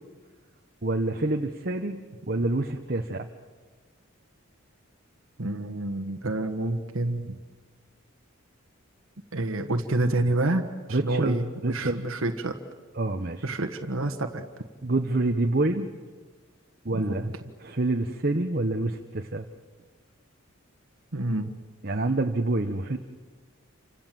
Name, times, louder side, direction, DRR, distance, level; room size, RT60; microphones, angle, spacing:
voice 1, 0.8-2.0 2.3-3.3 10.9-12.0 13.0-13.4 14.8-15.9 16.8-17.3 17.6-19.4 21.8-23.0, right 2 dB, 45° right, 4 dB, 1.1 m, -27 dB
voice 2, 5.4-7.4 9.3-10.6 10.9-12.6 13.4-14.4 16.9-17.3 21.1-21.6, right 2 dB, 75° right, 5 dB, 1.4 m, -28 dB
29.0 x 26.0 x 7.7 m, 1.4 s
head